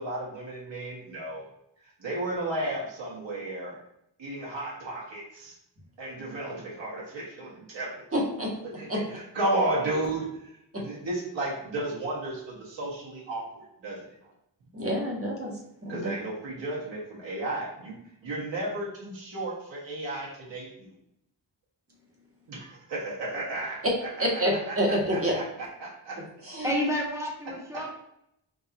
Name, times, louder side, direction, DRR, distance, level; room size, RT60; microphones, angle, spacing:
voice 1, 0.0-1.4 2.0-3.8 4.2-5.5 6.0-7.9 8.8-14.0 14.2-14.3 15.9-18.0 18.2-20.9 22.5-23.8 24.7-25.4 25.8-26.2 27.7-27.8, right 2 dB, 75° right, -5 dB, 1.4 m, -33 dB
voice 2, 8.1-8.5 8.9-9.0 10.7-10.8 14.7-15.5 15.8-16.0 24.2-25.3 26.4-26.7, equal, 30° right, -2 dB, 1.3 m, -27 dB
voice 3, 26.6-27.9, equal, 5° right, -3 dB, 1.2 m, -30 dB
3.8 x 2.6 x 4.0 m, 0.79 s
wide cardioid pair, 85°, 45 cm